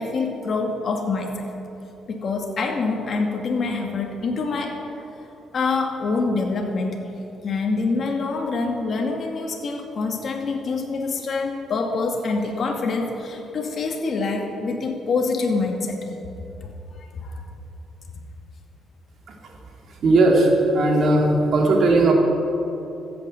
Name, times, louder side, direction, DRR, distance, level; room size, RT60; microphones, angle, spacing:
voice 1, 0.0-1.5 2.1-4.8 5.5-7.0 7.4-16.1 16.9-17.4, left 3 dB, 50° left, 2 dB, 2.1 m, -25 dB
voice 2, 20.0-22.1, right 2 dB, 60° right, 0 dB, 2.8 m, -17 dB
13.5 x 8.9 x 7.8 m, 3.0 s
cardioid pair, 90°, 0 cm